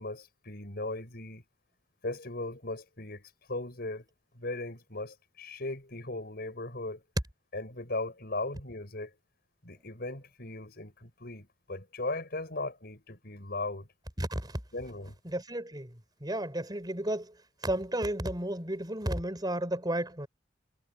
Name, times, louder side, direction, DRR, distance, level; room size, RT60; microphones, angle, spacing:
voice 1, 0.0-1.4 2.0-4.1 4.3-7.0 7.5-9.1 9.6-13.9 14.7-15.2, left 2 dB, 55° left, 6.0 m, -38 dB
voice 2, 14.2-14.6 15.3-15.9 16.2-17.3 17.6-20.3, right 1 dB, 20° right, 5.3 m, -33 dB
head